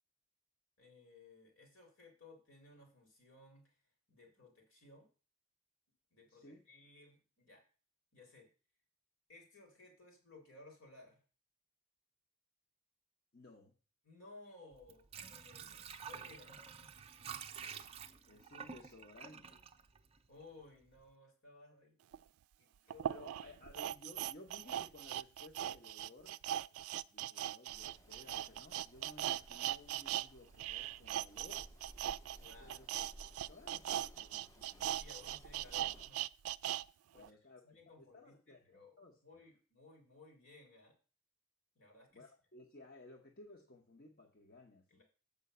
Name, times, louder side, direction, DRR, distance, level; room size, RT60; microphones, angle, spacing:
voice 1, 0.8-3.8 4.1-5.1 6.1-7.6 8.1-8.5 9.3-11.2 14.0-16.9 20.3-22.0 22.3-23.6 32.4-32.8 34.9-36.3 37.1-37.4 37.6-41.0 41.8-42.3 44.9-45.0, left 2 dB, 70° left, 1 dB, 3.9 m, -59 dB
voice 2, 13.3-13.8 18.3-19.6 22.8-26.4 27.1-31.7 32.6-32.9 33.5-35.0 37.1-39.2 42.1-45.0, left 2 dB, 45° left, 0 dB, 1.0 m, -58 dB
Water / Sink (filling or washing), 14.7-20.6 21.0-21.1, right 7 dB, 25° right, 0.5 m, -50 dB
sound 1, 22.1-22.2 22.9-30.3 30.5-36.8 37.2-37.3, right 12 dB, 85° right, 0.3 m, -40 dB
sound 2, 27.7-36.1, equal, 15° left, 0.7 m, -59 dB
7.6 x 5.4 x 6.7 m, 0.36 s
head